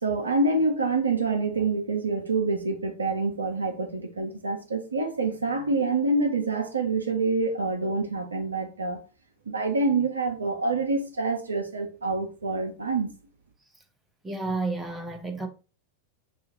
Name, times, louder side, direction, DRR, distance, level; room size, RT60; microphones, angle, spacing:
voice 1, 0.0-9.0 9.5-13.1, right 3 dB, 75° right, 0.7 m, -26 dB
voice 2, 14.2-15.5, right 3 dB, 10° right, 0.8 m, -31 dB
6.5 x 2.4 x 2.7 m
figure-of-eight pair, 90°, 0 cm